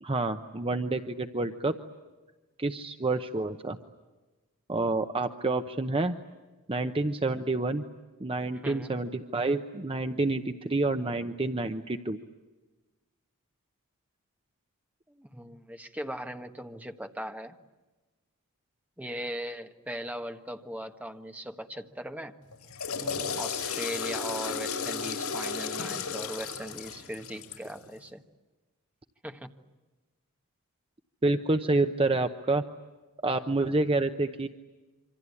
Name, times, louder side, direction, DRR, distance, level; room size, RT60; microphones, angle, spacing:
voice 1, 0.0-1.8 2.6-3.8 4.7-6.1 6.7-7.8 8.2-12.2 31.2-32.6 33.2-34.5, right 2 dB, 25° right, 8 dB, 0.9 m, -28 dB
voice 2, 8.6-8.9 15.1-17.6 19.0-22.4 23.4-28.2 29.2-29.5, equal, 5° right, 6 dB, 1.4 m, -39 dB
Water / Toilet flush, 22.5-27.8, left 5 dB, 85° left, 5.6 m, -34 dB
27.0 x 25.5 x 8.5 m, 1.2 s
head